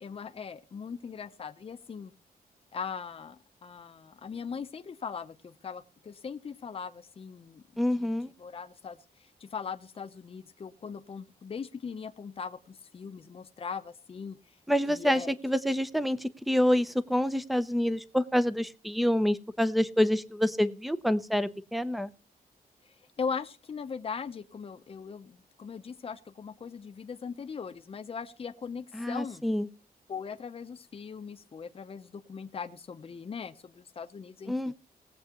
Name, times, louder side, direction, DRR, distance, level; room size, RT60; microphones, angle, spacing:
voice 1, 0.0-2.1 2.7-7.6 8.0-8.1 8.4-14.4 14.9-15.3 23.2-29.4 30.1-34.7, left 6 dB, 35° left, 7 dB, 0.8 m, -40 dB
voice 2, 7.8-8.3 14.7-22.1 28.9-29.7 34.5-34.7, equal, ahead, 14 dB, 0.6 m, -27 dB
19.5 x 7.9 x 3.0 m, 0.35 s
wide cardioid pair, 165°, 16 cm